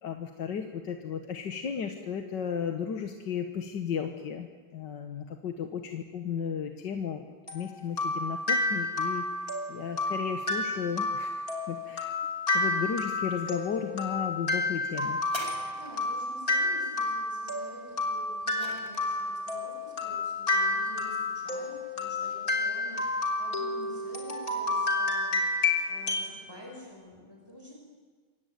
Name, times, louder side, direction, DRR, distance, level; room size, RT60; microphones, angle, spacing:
voice 1, 0.0-4.5 4.7-7.2 7.5-12.1 12.5-15.2, left 7 dB, 60° left, 6 dB, 1.9 m, -34 dB
sound 1, 7.5-26.4, left 2 dB, 40° left, 4.0 m, -30 dB
sound 2, 15.2-16.3 18.0-19.4 20.2-20.3, equal, 10° right, 4.0 m, -43 dB
voice 2, 15.4-27.7, left 1 dB, 10° left, -1 dB, 6.6 m, -48 dB
27.0 x 23.0 x 9.3 m, 1.5 s
omnidirectional pair, 2.3 m